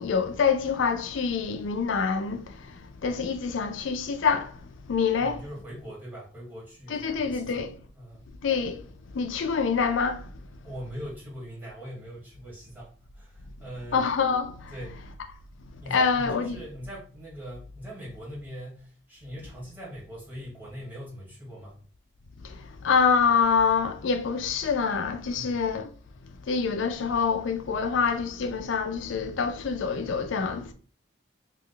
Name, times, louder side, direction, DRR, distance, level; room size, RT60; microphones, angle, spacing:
voice 1, 0.0-2.7 3.0-4.5 4.9-5.4 6.9-7.7 8.4-8.8 9.1-10.3 13.9-14.7 15.9-16.6 22.4-25.9 26.5-30.7, left 5 dB, 85° left, 0.4 m, -26 dB
voice 2, 5.2-7.7 7.9-8.3 10.6-14.0 14.7-15.0 15.8-21.8 25.3-25.6, equal, 10° right, 1.3 m, -41 dB
2.9 x 2.2 x 3.8 m
head